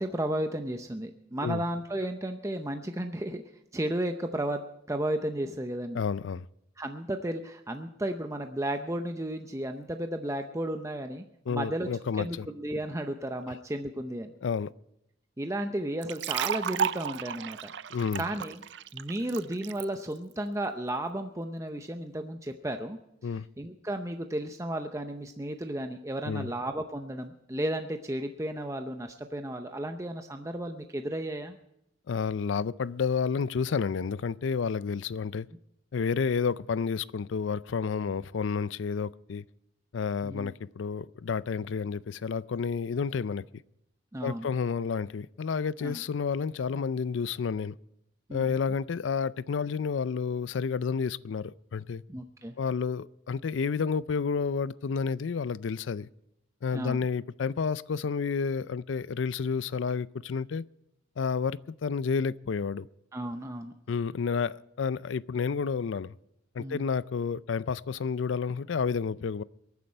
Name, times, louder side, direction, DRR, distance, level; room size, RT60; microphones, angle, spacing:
voice 1, 0.0-3.4 3.7-4.6 4.9-6.0 6.8-11.9 12.2-14.3 15.4-17.7 18.2-18.6 18.9-23.0 23.6-31.6 40.2-40.5 44.1-44.5 45.8-46.0 48.3-48.6 52.1-52.5 56.7-57.0 63.1-63.7 66.6-66.8, right 1 dB, 15° right, 0.7 m, -33 dB
voice 2, 5.9-6.5 11.5-12.5 14.4-14.7 17.9-18.2 23.2-23.5 26.3-26.5 32.1-35.5 35.9-39.4 39.9-43.4 44.2-47.7 48.3-52.0 52.6-56.1 56.6-60.6 61.2-62.9 63.9-66.1 66.5-69.4, left 5 dB, 85° left, 0.4 m, -30 dB
sound 1, 16.0-19.8, right 8 dB, 70° right, 0.5 m, -33 dB
23.0 x 9.5 x 4.4 m
head